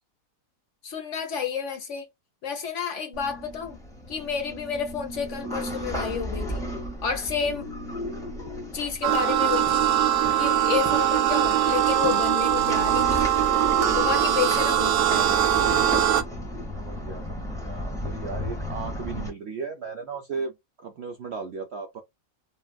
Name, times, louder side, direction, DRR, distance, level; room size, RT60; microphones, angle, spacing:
voice 1, 0.8-2.1 2.4-3.8 4.1-6.6 7.0-7.7 8.7-9.9 10.4-13.3 13.9-15.4, left 7 dB, 55° left, 1.1 m, -30 dB
sound 1, 3.1-19.3, left 1 dB, 5° left, 0.7 m, -34 dB
sound 2, 9.0-16.2, right 11 dB, 80° right, 1.1 m, -22 dB
voice 2, 16.7-22.0, right 5 dB, 65° right, 0.7 m, -36 dB
3.2 x 2.4 x 2.3 m
omnidirectional pair, 1.6 m